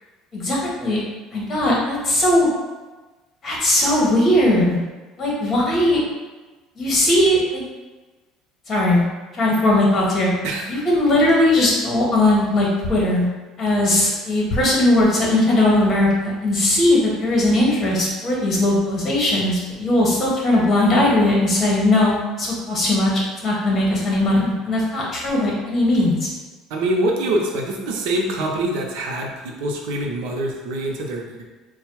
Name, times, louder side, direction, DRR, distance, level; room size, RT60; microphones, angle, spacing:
voice 1, 0.3-1.0 1.3-2.5 3.4-4.8 5.2-6.0 6.8-7.6 8.7-9.0 9.3-10.3 10.7-13.3 13.6-26.3, left 1 dB, 30° left, -4 dB, 1.3 m, -19 dB
voice 2, 26.7-31.4, right 1 dB, 80° right, 1 dB, 0.7 m, -24 dB
4.1 x 2.3 x 4.6 m, 1.2 s
cardioid pair, 140°, 0 cm